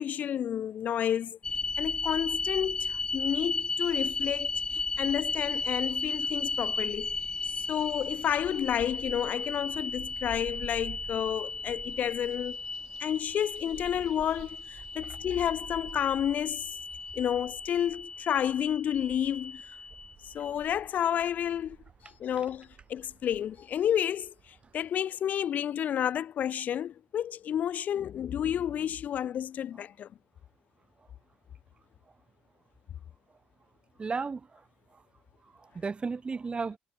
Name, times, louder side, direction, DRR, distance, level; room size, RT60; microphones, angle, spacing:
voice 1, 0.0-1.4 1.8-7.1 7.6-12.6 13.0-16.7 17.1-19.6 20.2-21.8 22.2-24.3 24.7-30.1, left 10 dB, 60° left, 1.2 m, -30 dB
sound 1, 1.4-20.5, left 3 dB, 30° left, 3.9 m, -35 dB
sound 2, 3.6-17.3, right 24 dB, 90° right, 6.1 m, -64 dB
sound 3, 5.8-24.9, right 7 dB, 50° right, 3.6 m, -51 dB
voice 2, 34.0-35.0 35.4-36.8, right 4 dB, 35° right, 6.9 m, -35 dB
hypercardioid pair, 55°, 3 cm